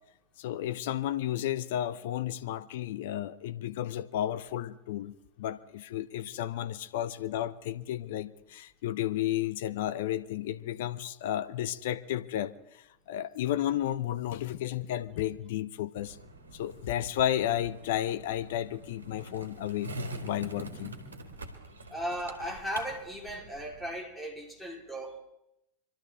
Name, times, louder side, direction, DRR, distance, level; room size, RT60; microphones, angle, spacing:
voice 1, 0.4-16.2 16.5-19.9 20.2-21.0, left 12 dB, 65° left, 0.7 m, -32 dB
Skateboard, 16.0-24.0, right 1 dB, 85° right, 1.8 m, -45 dB
voice 2, 21.9-25.2, equal, 5° left, 3.6 m, -36 dB
25.5 x 13.0 x 3.5 m
figure-of-eight pair, 85°, 0 cm